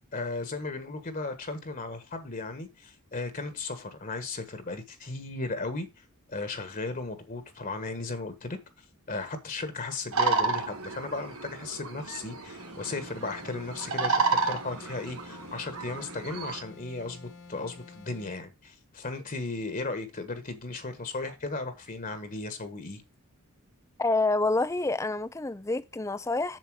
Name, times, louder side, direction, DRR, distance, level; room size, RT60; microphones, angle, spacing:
voice 1, 0.0-5.9 6.3-8.6 9.1-23.0, left 3 dB, 40° left, 1.4 m, -36 dB
sound 1, 10.1-16.6, right 4 dB, 70° right, 1.8 m, -31 dB
sound 2, 12.6-18.4, left 4 dB, 85° left, 2.9 m, -49 dB
voice 2, 24.0-26.6, left 2 dB, 15° left, 0.5 m, -27 dB
7.7 x 7.0 x 4.8 m
head